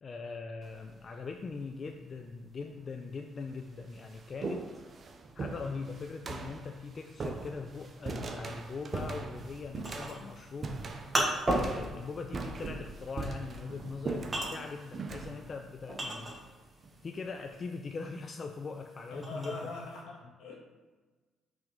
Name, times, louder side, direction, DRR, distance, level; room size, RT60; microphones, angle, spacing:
voice 1, 0.0-4.7 5.3-16.3 17.0-19.6, left 4 dB, 40° left, 4 dB, 0.4 m, -41 dB
sound 1, 0.6-1.1 2.0-2.1 3.0-3.1 3.4-17.0, right 3 dB, 45° right, 0.7 m, -40 dB
sound 2, 9.4-16.7 17.1-20.0, right 1 dB, 25° right, 1.5 m, -35 dB
voice 2, 19.1-20.6, left 2 dB, 75° left, -3 dB, 1.9 m, -42 dB
6.0 x 3.6 x 5.2 m, 1.3 s
supercardioid pair, 75°, 0 cm